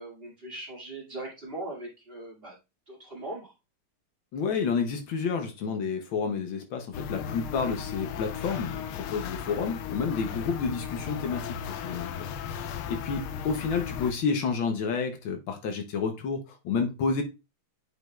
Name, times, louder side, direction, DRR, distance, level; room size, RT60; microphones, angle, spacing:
voice 1, 0.0-2.5 2.9-3.5, right 2 dB, 25° right, 2.5 m, -40 dB
voice 2, 4.3-17.2, left 5 dB, 70° left, 1.6 m, -30 dB
sound 1, 6.9-14.1, left 7 dB, 90° left, 1.6 m, -36 dB
9.0 x 5.1 x 2.3 m
omnidirectional pair, 2.3 m